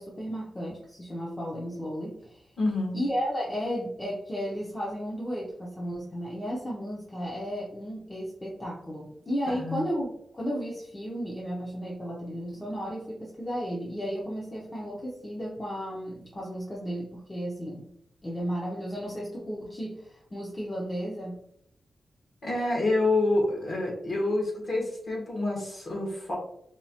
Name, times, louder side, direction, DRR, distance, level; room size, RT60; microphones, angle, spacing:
voice 1, 0.0-2.4 2.9-17.9 18.2-21.4, equal, 15° left, -4 dB, 0.7 m, -34 dB
voice 2, 2.6-3.0 9.5-9.8 22.4-26.4, left 2 dB, 50° left, -2 dB, 1.4 m, -27 dB
4.4 x 2.3 x 2.7 m, 0.73 s
wide cardioid pair, 160°, 0 cm